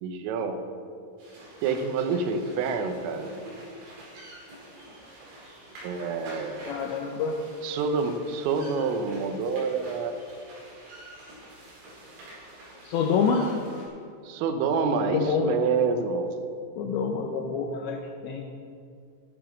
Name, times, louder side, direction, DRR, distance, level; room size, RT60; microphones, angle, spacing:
voice 1, 0.0-0.6 1.6-3.3 5.8-6.6 7.6-10.1 14.2-16.3, right 4 dB, 80° right, 6 dB, 3.6 m, -27 dB
sound 1, 1.2-13.9, right 1 dB, 65° right, 7.0 m, -47 dB
voice 2, 6.7-7.4 12.8-13.5 15.1-15.5 16.8-18.4, left 5 dB, 75° left, 3 dB, 2.7 m, -27 dB
13.0 x 12.5 x 6.3 m, 2.3 s
omnidirectional pair, 5.9 m